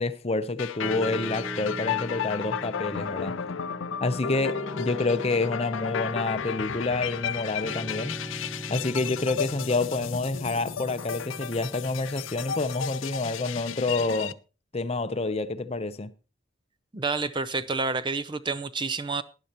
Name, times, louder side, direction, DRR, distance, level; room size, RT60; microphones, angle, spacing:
voice 1, 0.0-3.4 4.0-8.2 8.7-14.4 14.7-16.1, left 3 dB, 30° left, 0.6 m, -28 dB
sound 1, 0.6-14.3, left 8 dB, 80° left, 0.5 m, -34 dB
Piano, 0.8-14.2, right 1 dB, 5° right, 0.9 m, -41 dB
voice 2, 16.9-19.2, right 4 dB, 25° right, 0.5 m, -29 dB
18.5 x 10.5 x 2.9 m
head